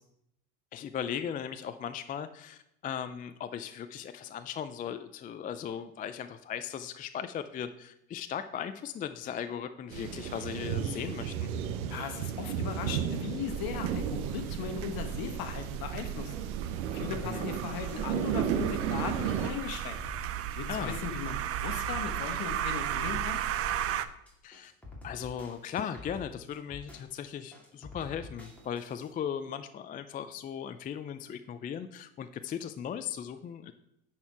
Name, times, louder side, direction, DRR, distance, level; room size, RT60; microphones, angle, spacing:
voice 1, 0.7-11.5 17.1-17.5 20.7-21.0 24.4-24.7 25.0-33.7, left 8 dB, 20° left, 10 dB, 0.3 m, -37 dB
sound 1, 9.9-19.5, right 9 dB, 85° right, 0.9 m, -34 dB
voice 2, 11.9-16.3 16.9-20.0 20.5-23.4, left 7 dB, 55° left, 7 dB, 1.4 m, -38 dB
sound 2, 13.5-24.1, right 11 dB, 35° right, 0.5 m, -35 dB
sound 3, 17.1-29.1, left 2 dB, 5° left, 2.5 m, -48 dB
9.7 x 4.5 x 4.6 m, 0.79 s
supercardioid pair, 95°, 42 cm